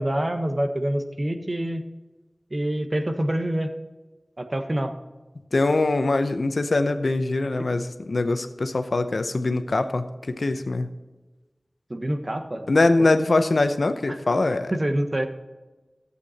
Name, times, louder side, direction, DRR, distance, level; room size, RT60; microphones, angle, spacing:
voice 1, 0.0-1.8 2.5-3.7 4.4-4.9 11.9-12.7 13.0-13.1 14.7-15.3, right 1 dB, 45° right, 7 dB, 1.2 m, -26 dB
voice 2, 5.5-10.9 12.7-14.7, left 2 dB, 80° left, 9 dB, 0.8 m, -23 dB
13.5 x 8.4 x 4.2 m, 1.2 s
wide cardioid pair, 45°, 0 cm